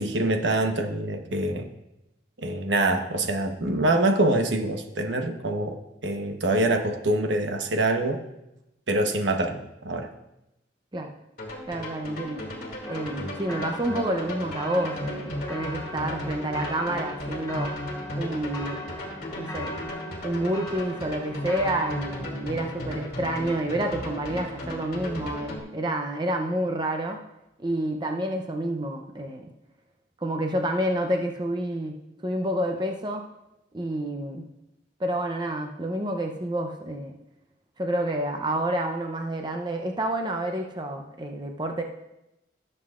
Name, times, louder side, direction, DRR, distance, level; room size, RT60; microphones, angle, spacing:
voice 1, 0.0-1.7 2.4-5.8 6.0-8.2 8.9-10.1, right 2 dB, 80° right, 4 dB, 1.1 m, -25 dB
sound 1, 11.4-25.6, left 1 dB, 50° left, 2.4 m, -35 dB
voice 2, 11.7-12.4 12.9-17.7 18.2-18.8 19.4-19.8 20.2-27.2 27.6-29.5 30.2-32.0 32.2-33.2 33.7-34.4 35.0-37.2 37.8-41.8, right 1 dB, 25° right, 3 dB, 0.7 m, -29 dB
sound 2, 12.8-22.2, equal, 15° left, 1.0 m, -40 dB
17.0 x 7.7 x 2.5 m, 0.89 s
head